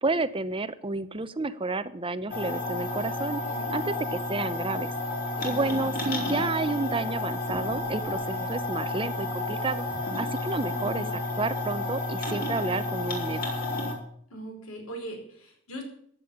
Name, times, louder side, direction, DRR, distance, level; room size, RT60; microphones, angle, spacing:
voice 1, 0.0-3.4 3.7-4.9 5.4-9.9 10.1-11.0 11.4-13.4, right 3 dB, 25° right, 13 dB, 0.7 m, -30 dB
sound 1, 2.3-13.9, left 2 dB, 45° left, 4.2 m, -31 dB
voice 2, 3.4-3.8 5.3-5.9 10.7-11.1 14.3-15.8, right 1 dB, 80° left, 3 dB, 5.2 m, -41 dB
15.0 x 9.2 x 7.3 m, 0.64 s
head